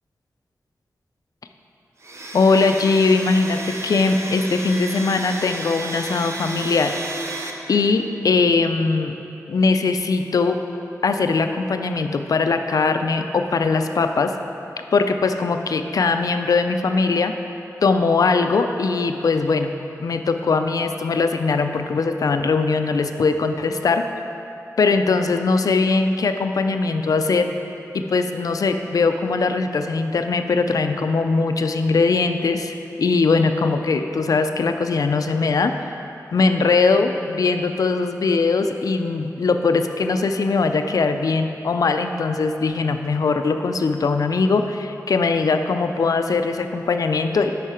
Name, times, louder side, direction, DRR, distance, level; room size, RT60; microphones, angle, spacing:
Domestic sounds home sounds, 2.0-7.5, right 2 dB, 45° right, 0.7 m, -32 dB
voice 1, 2.3-7.0 7.7-9.2 9.5-10.6 11.0-14.3 14.9-17.3 17.8-19.7 20.0-24.0 24.8-27.5 27.9-35.7 36.3-47.5, left 4 dB, 65° left, 7 dB, 0.4 m, -20 dB
8.3 x 5.5 x 4.4 m, 2.9 s
wide cardioid pair, 70°, 6 cm